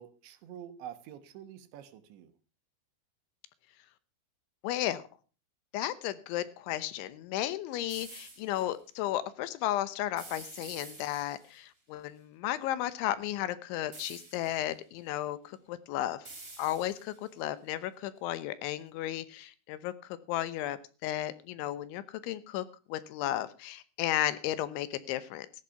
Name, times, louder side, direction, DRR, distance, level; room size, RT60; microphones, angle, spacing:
voice 1, 0.0-2.3, right 10 dB, 75° right, 10 dB, 3.5 m, -47 dB
voice 2, 4.6-5.0 5.7-16.2 16.6-19.9 20.3-25.5, left 13 dB, 80° left, 15 dB, 3.3 m, -34 dB
sound 1, 7.9-8.6 10.2-11.6 13.9-14.7 16.2-17.3, right 2 dB, 20° right, 4.5 m, -49 dB
15.5 x 11.5 x 5.7 m, 0.36 s
omnidirectional pair, 5.5 m